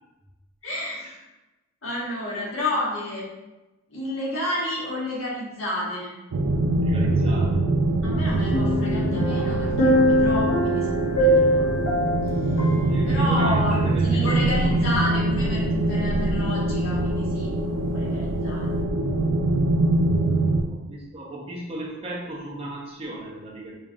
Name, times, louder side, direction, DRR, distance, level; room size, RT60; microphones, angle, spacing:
voice 1, 0.6-1.3 1.8-3.3 3.9-6.2 8.0-11.7 12.4-12.7 13.1-18.7, left 1 dB, 70° left, -5 dB, 1.2 m, -30 dB
sound 1, 6.3-20.6, right 2 dB, 85° right, 0.4 m, -23 dB
voice 2, 6.8-7.6 12.6-14.7 20.7-23.8, right 1 dB, 30° right, -3 dB, 0.7 m, -36 dB
sound 2, 8.5-13.9 14.3-14.4, equal, 90° left, 0.8 m, -23 dB
4.5 x 2.4 x 2.6 m, 1.1 s
head